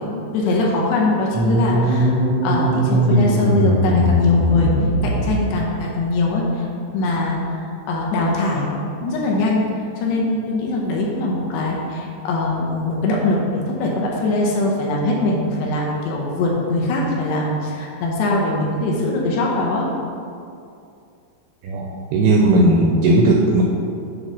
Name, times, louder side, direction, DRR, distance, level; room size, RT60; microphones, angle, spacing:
voice 1, 0.0-2.1 2.4-4.7 5.0-6.7 6.9-9.7 10.0-19.9, left 2 dB, 75° left, -2 dB, 2.8 m, -22 dB
sound 1, 1.3-5.6, right 1 dB, 65° right, 1.3 m, -19 dB
voice 2, 21.6-23.6, right 2 dB, 85° right, -1 dB, 2.3 m, -16 dB
8.2 x 3.2 x 6.2 m, 2.5 s
omnidirectional pair, 5.1 m